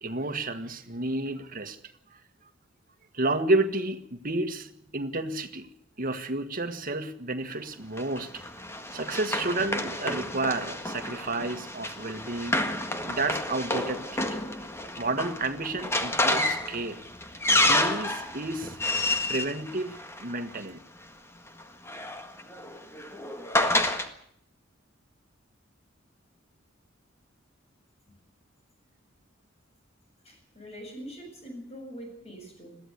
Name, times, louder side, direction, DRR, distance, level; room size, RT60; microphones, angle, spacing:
voice 1, 0.0-1.8 2.1-2.2 3.1-5.7 6.0-8.4 8.9-14.4 15.0-17.0 17.7-18.8 19.3-20.8, right 2 dB, 45° right, 9 dB, 1.7 m, -31 dB
Run, 8.0-20.6 21.6-24.1, left 1 dB, 15° left, 1.7 m, -29 dB
voice 2, 30.2-32.8, equal, 30° left, 4 dB, 7.7 m, -43 dB
21.5 x 15.0 x 8.2 m, 0.70 s
head